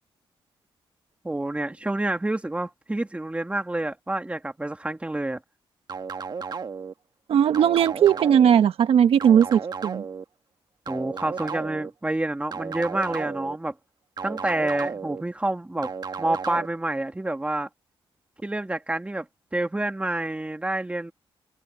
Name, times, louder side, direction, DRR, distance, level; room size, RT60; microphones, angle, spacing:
voice 1, 1.2-5.4 10.9-13.7 14.2-15.9 16.2-17.7 18.4-19.3 19.5-21.1, right 2 dB, 15° right, 2.5 m, -28 dB
sound 1, 5.9-6.9 7.5-8.6 9.2-10.2 10.9-11.9 12.5-13.6 14.2-15.2 15.8-16.7, right 5 dB, 45° right, 1.4 m, -34 dB
voice 2, 7.3-10.0, right 9 dB, 85° right, 1.2 m, -18 dB
cardioid pair, 100°, 9 cm